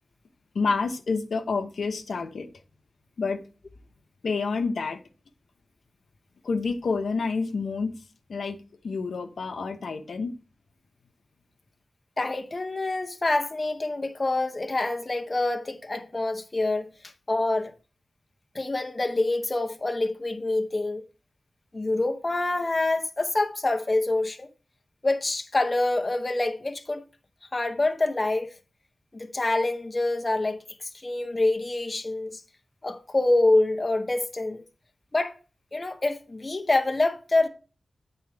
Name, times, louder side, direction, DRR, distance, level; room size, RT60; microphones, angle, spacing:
voice 1, 0.5-2.5 3.2-3.4 4.2-5.0 6.4-8.0 8.3-10.3, left 4 dB, 90° left, 0.9 m, -28 dB
voice 2, 12.2-17.7 18.5-21.0 21.7-24.5 25.0-27.0 27.5-28.5 29.1-32.4 32.8-34.6 35.1-35.4 35.7-37.5, left 2 dB, 30° left, 0.9 m, -26 dB
8.6 x 4.5 x 4.6 m
wide cardioid pair, 100°, 0 cm